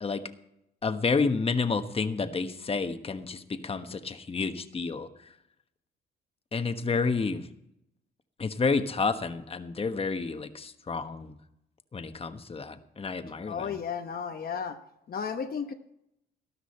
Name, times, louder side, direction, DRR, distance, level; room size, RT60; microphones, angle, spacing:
voice 1, 0.8-5.1 6.5-7.5 8.4-11.3 11.9-13.8, left 4 dB, 30° left, 9 dB, 1.2 m, -30 dB
voice 2, 13.5-14.8 15.1-15.7, left 6 dB, 50° left, 6 dB, 1.0 m, -33 dB
13.0 x 12.5 x 4.4 m, 0.79 s
cardioid pair, 90°, 20 cm